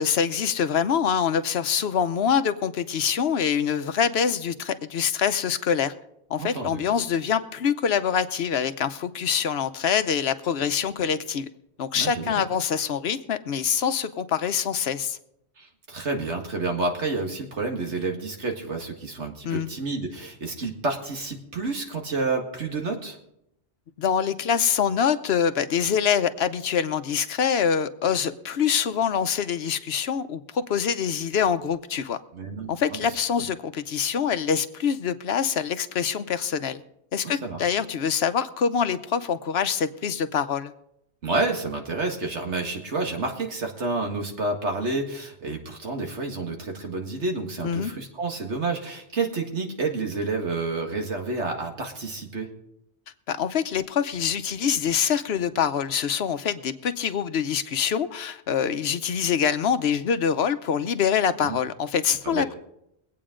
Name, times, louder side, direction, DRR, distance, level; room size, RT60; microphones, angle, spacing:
voice 1, 0.0-5.9 6.3-11.5 11.8-15.2 19.4-19.7 24.0-32.2 32.7-36.8 37.1-40.7 47.6-47.9 53.3-62.5, left 7 dB, 70° left, 12 dB, 0.9 m, -25 dB
voice 2, 6.4-6.8 11.9-12.4 15.6-23.2 32.3-33.2 37.2-37.7 41.2-52.5 61.4-61.6 62.2-62.5, right 3 dB, 85° right, 3 dB, 2.1 m, -29 dB
23.0 x 8.6 x 3.8 m, 0.79 s
omnidirectional pair, 1.1 m